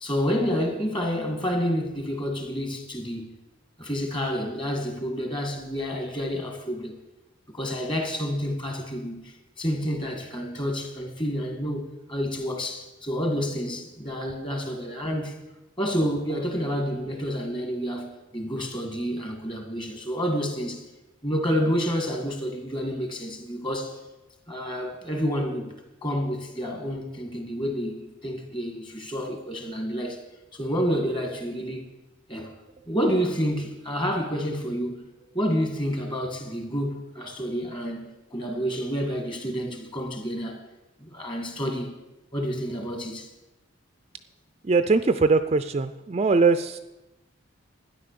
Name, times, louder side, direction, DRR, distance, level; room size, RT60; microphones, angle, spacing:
voice 1, 0.0-3.4 3.8-7.0 7.5-15.4 15.8-20.9 21.2-24.0 24.5-25.7 26.0-30.2 30.5-31.9 32.3-32.5 32.9-35.1 35.3-40.6 41.0-42.0 42.3-43.3, equal, 25° left, 2.1 m, -29 dB
voice 2, 44.6-46.8, right 4 dB, 30° right, 0.4 m, -21 dB
12.5 x 10.0 x 6.8 m
head